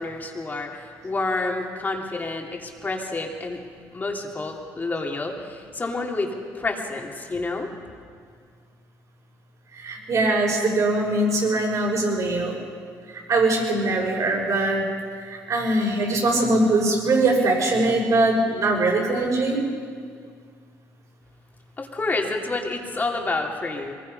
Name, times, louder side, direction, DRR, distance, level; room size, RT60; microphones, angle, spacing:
voice 1, 0.0-3.6 3.9-7.7 21.8-23.9, left 3 dB, 25° left, 0 dB, 3.1 m, -29 dB
voice 2, 9.7-12.6 13.1-14.8 15.2-19.6, right 2 dB, 50° right, -1 dB, 6.3 m, -22 dB
23.0 x 20.5 x 5.5 m, 2.1 s
cardioid pair, 95°, 7 cm